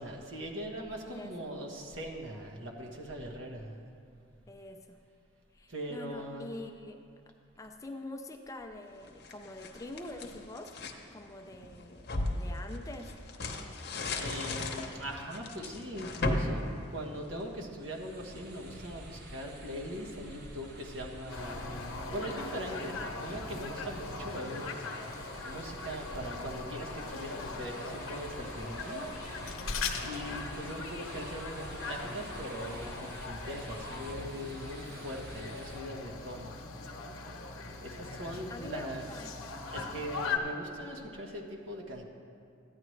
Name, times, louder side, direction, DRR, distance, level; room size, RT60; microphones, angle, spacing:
voice 1, 0.0-3.9 5.7-6.5 14.1-21.7 22.1-24.8 25.4-29.1 29.6-36.6 37.8-39.1 39.7-42.0, equal, 70° right, 0 dB, 1.3 m, -41 dB
voice 2, 1.1-1.5 4.5-5.0 5.5-7.0 7.6-10.8 11.1-13.1 38.3-39.3, left 2 dB, 15° left, 4 dB, 0.4 m, -45 dB
sound 1, 9.0-11.0 11.5-17.6, left 2 dB, 50° left, 0.8 m, -36 dB
sound 2, 17.8-35.8, equal, 50° right, 1.3 m, -48 dB
sound 3, 21.3-40.4, left 4 dB, 85° left, 0.8 m, -40 dB
14.0 x 9.6 x 3.2 m, 2.5 s
head